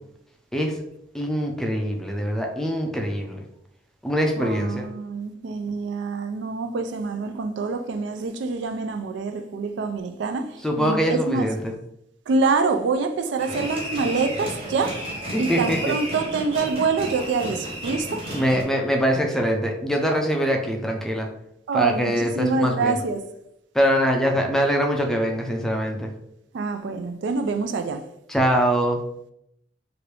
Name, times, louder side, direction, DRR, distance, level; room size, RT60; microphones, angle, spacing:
voice 1, 1.1-3.4 4.0-4.9 10.6-11.7 15.3-15.9 18.3-21.3 21.7-23.0 23.7-26.1 28.3-29.0, equal, 5° left, 0.4 m, -23 dB
voice 2, 4.4-11.5 12.3-15.1 15.4-18.2 20.1-20.3 21.7-23.3 26.5-28.0, right 4 dB, 80° right, 0.3 m, -26 dB
sound 1, 13.4-18.6, right 1 dB, 35° right, 0.8 m, -32 dB
3.1 x 2.5 x 3.2 m
head